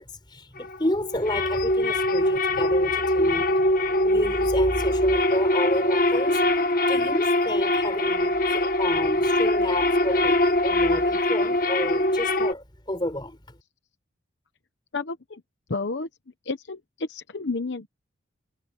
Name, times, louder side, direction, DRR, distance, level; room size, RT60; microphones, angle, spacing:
voice 1, 0.0-3.7 4.0-6.4 6.9-13.4, left 1 dB, 25° left, 4.3 m, -30 dB
sound 1, 0.6-12.5, left 1 dB, 45° left, 1.2 m, -23 dB
voice 2, 14.9-15.4 15.7-16.1 16.4-17.9, left 3 dB, 65° left, 0.9 m, -31 dB
head